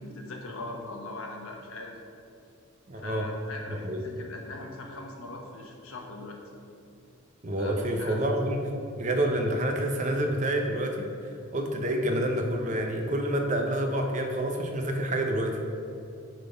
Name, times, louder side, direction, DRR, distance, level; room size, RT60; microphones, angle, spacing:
voice 1, 0.0-2.0 2.9-6.4 7.6-8.2, left 2 dB, 75° left, 1 dB, 1.1 m, -40 dB
voice 2, 2.9-3.3 3.7-4.0 7.4-8.6 9.0-11.1 11.5-15.6, right 1 dB, 35° right, 3 dB, 0.7 m, -28 dB
9.3 x 3.9 x 5.1 m, 2.6 s
head